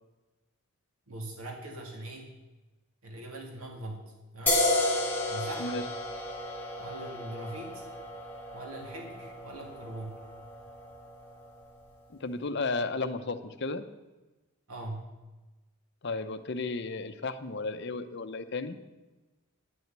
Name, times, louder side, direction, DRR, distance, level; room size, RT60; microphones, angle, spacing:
voice 1, 1.1-2.3 3.0-4.0 4.3-4.7 5.3-5.7 6.8-7.8 8.5-10.2 14.7-15.1, right 1 dB, 85° right, 1 dB, 2.2 m, -41 dB
sound 1, 4.5-11.8, left 2 dB, 10° left, 2.2 m, -33 dB
voice 2, 12.2-13.8 16.0-18.8, left 3 dB, 55° left, 10 dB, 0.8 m, -33 dB
11.0 x 6.4 x 8.8 m, 1.1 s
head